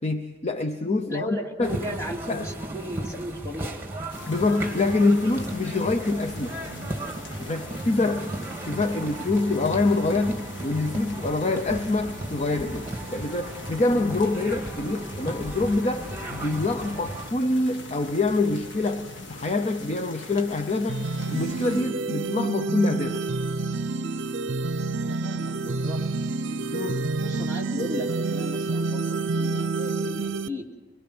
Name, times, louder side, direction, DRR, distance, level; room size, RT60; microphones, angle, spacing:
voice 1, 0.0-1.8 2.3-2.5 4.3-6.6 7.4-8.3 8.7-23.2 26.7-27.1, left 2 dB, 35° left, 0.7 m, -25 dB
voice 2, 1.1-3.8 25.0-26.0 27.2-30.7, left 1 dB, 15° left, 2.4 m, -35 dB
sound 1, 1.6-17.3, right 2 dB, 15° right, 2.0 m, -36 dB
sound 2, 4.1-21.8, left 2 dB, 70° left, 1.8 m, -42 dB
sound 3, 20.9-30.5, right 3 dB, 70° right, 0.6 m, -28 dB
24.0 x 21.5 x 6.2 m
head